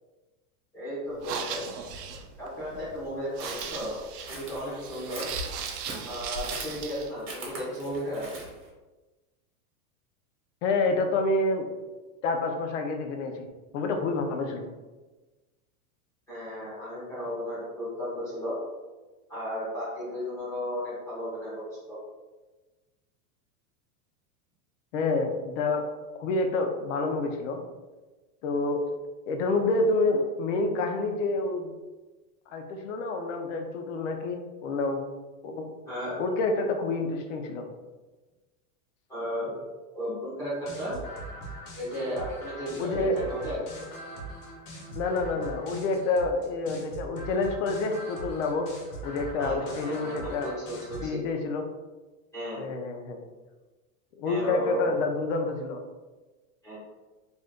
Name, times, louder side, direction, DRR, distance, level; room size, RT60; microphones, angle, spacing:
voice 1, 0.7-1.6 2.4-4.0 4.3-5.3 6.0-8.2 16.3-18.5 19.3-22.0 35.9-36.2 39.1-39.6 39.9-41.0 41.8-43.6 49.4-51.2 52.3-52.6 54.2-54.9 56.6-56.8, equal, 10° left, -12 dB, 0.5 m, -34 dB
sound 1, 1.1-7.1, right 6 dB, 80° right, 0.6 m, -38 dB
sound 2, 3.4-8.7, right 2 dB, 45° right, 1.0 m, -41 dB
voice 2, 10.6-11.7 12.2-13.5 13.7-14.7 24.9-25.9 26.2-27.6 28.4-28.8 29.3-31.7 32.5-35.0 35.4-35.7 36.2-37.7 42.8-43.2 44.9-48.7 49.0-50.5 51.0-51.7 52.6-53.2 54.2-55.8, left 3 dB, 55° left, 4 dB, 0.5 m, -28 dB
sound 3, 40.5-51.1, right 2 dB, 80° left, 1.1 m, -41 dB
2.6 x 2.2 x 3.4 m, 1.2 s
supercardioid pair, 165°, 46 cm